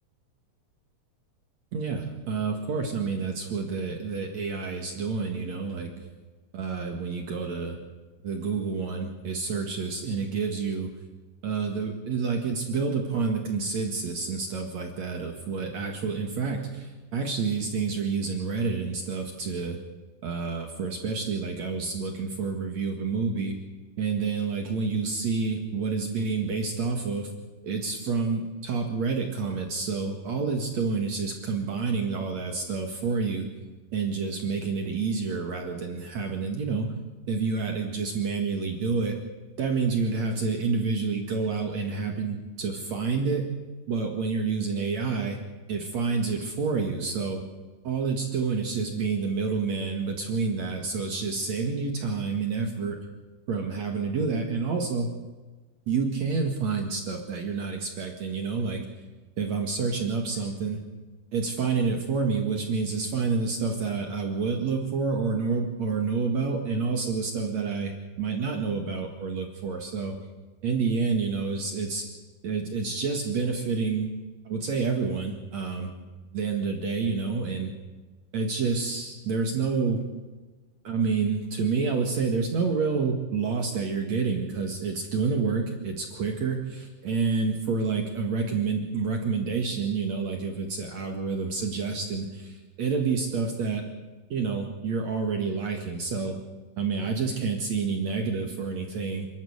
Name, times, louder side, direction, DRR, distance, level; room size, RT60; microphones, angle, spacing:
voice 1, 1.7-5.9 6.5-7.8 8.2-10.9 11.4-19.8 20.2-23.6 24.0-27.3 27.6-33.5 33.9-36.9 37.3-39.2 39.6-43.5 43.9-45.4 45.7-47.4 47.8-53.0 53.5-55.1 55.9-58.8 59.4-60.8 61.3-67.9 68.2-70.1 70.6-72.1 72.4-74.1 74.5-75.9 76.3-77.7 78.3-80.0 80.8-93.8 94.3-96.4 96.8-99.3, right 4 dB, 55° right, 3 dB, 2.8 m, -28 dB
28.0 x 12.5 x 8.1 m, 1.3 s
omnidirectional pair, 4.3 m